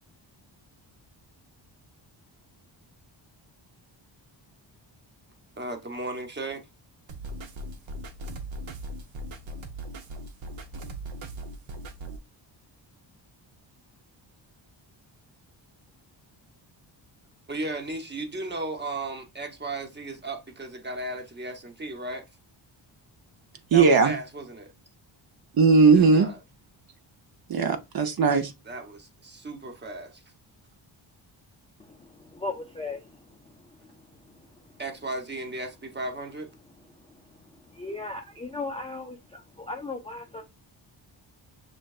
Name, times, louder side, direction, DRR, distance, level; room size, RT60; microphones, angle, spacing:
voice 1, 5.6-6.7 17.5-22.2 23.7-24.7 25.9-26.4 28.6-30.2 34.8-36.5, right 2 dB, 25° right, 0.9 m, -35 dB
sound 1, 7.1-12.2, right 1 dB, 75° right, 0.9 m, -39 dB
voice 2, 23.7-24.1 25.6-26.3 27.5-28.5, right 4 dB, 50° right, 0.7 m, -18 dB
voice 3, 31.8-33.2 37.7-40.5, left 3 dB, 15° left, 0.3 m, -37 dB
6.4 x 3.2 x 2.4 m
wide cardioid pair, 135°, 47 cm